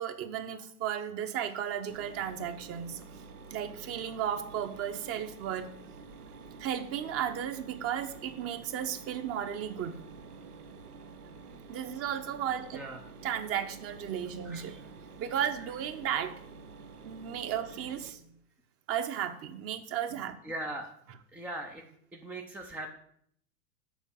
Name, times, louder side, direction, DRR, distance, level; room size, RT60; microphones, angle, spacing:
voice 1, 0.0-3.2 3.5-5.7 6.6-10.0 11.7-12.8 13.2-14.8 15.2-16.4 17.0-18.3 18.9-20.4, right 9 dB, 30° right, 9 dB, 0.9 m, -34 dB
Mechanisms, 1.9-18.1, right 4 dB, 85° right, 0.9 m, -49 dB
voice 2, 20.4-20.9 21.3-21.8 22.1-22.9, right 1 dB, 5° right, 2 dB, 0.4 m, -39 dB
7.2 x 4.7 x 6.9 m, 0.67 s
hypercardioid pair, 100°, 44 cm